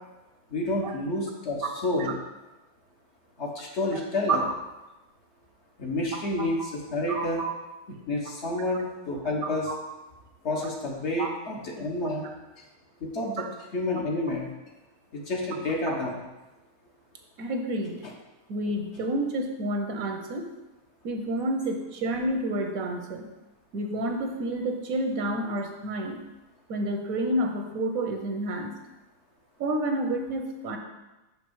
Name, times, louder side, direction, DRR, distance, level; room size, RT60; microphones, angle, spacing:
voice 1, 0.5-2.1 3.4-4.4 5.8-7.4 8.1-9.7 10.4-12.3 13.0-13.4 13.7-14.5 15.1-16.2, left 2 dB, 55° left, -1 dB, 1.3 m, -29 dB
voice 2, 7.1-7.5 9.4-9.7 11.2-11.3 13.4-13.5 15.9-16.0 17.4-18.0 18.5-20.5 21.0-23.3 23.7-26.2 26.7-28.7 29.6-30.8, right 1 dB, 75° right, 4 dB, 1.3 m, -29 dB
6.2 x 5.3 x 4.7 m, 1.1 s
omnidirectional pair, 1.5 m